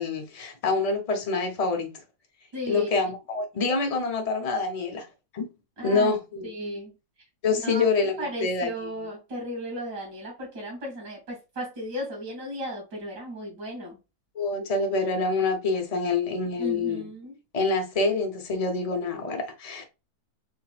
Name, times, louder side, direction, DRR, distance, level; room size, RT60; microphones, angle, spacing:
voice 1, 0.0-2.0 2.7-5.1 5.3-5.5 5.8-6.4 7.4-8.7 14.3-17.0 17.5-19.8, left 3 dB, 35° left, 0.6 m, -26 dB
voice 2, 2.5-2.9 5.8-6.1 6.4-7.0 7.5-14.0 16.5-17.4, right 1 dB, 85° right, 2.9 m, -35 dB
4.9 x 3.0 x 2.3 m
omnidirectional pair, 1.8 m